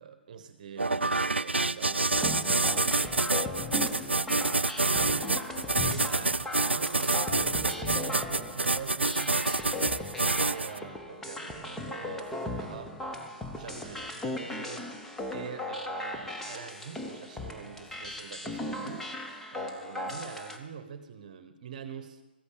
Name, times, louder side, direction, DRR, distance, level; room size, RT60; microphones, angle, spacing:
voice 1, 0.0-10.2 10.4-12.9 13.6-22.2, right 7 dB, 45° right, 10 dB, 1.1 m, -45 dB
sound 1, 0.8-10.8, right 3 dB, 90° right, 0.4 m, -27 dB
sound 2, 2.1-20.6, left 2 dB, 5° left, 0.9 m, -37 dB
14.5 x 9.7 x 6.8 m, 1.1 s
figure-of-eight pair, 135°, 6 cm